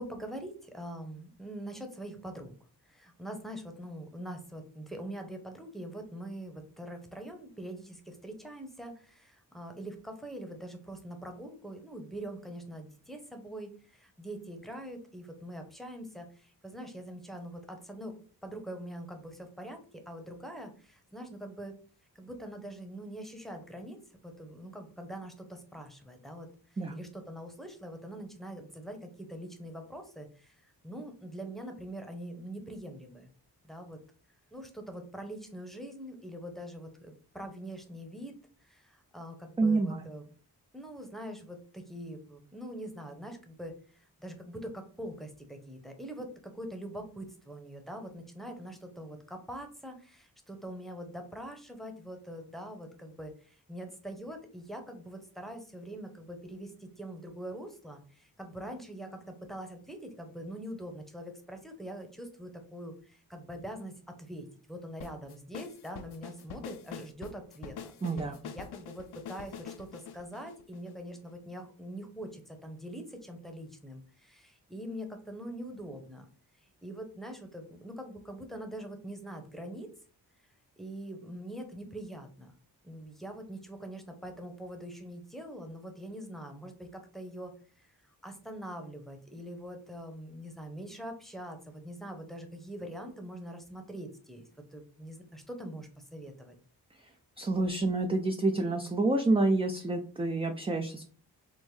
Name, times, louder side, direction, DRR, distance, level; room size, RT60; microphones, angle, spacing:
voice 1, 0.0-2.5 2.9-18.1 18.4-19.8 20.1-21.7 22.1-24.0 24.2-26.5 26.9-33.3 33.6-34.0 34.5-38.3 38.7-40.2 40.7-43.7 44.2-67.9 68.4-76.3 76.8-79.9 80.8-82.5 82.8-87.5 87.8-87.9 88.2-94.4 94.7-96.5, right 1 dB, ahead, 4 dB, 0.8 m, -43 dB
voice 2, 39.6-40.1 68.0-68.4 97.4-101.0, right 2 dB, 15° right, 4 dB, 0.3 m, -28 dB
sound 1, 65.0-71.3, left 7 dB, 70° left, 0.5 m, -45 dB
3.6 x 2.0 x 3.2 m, 0.41 s
cardioid pair, 45°, 41 cm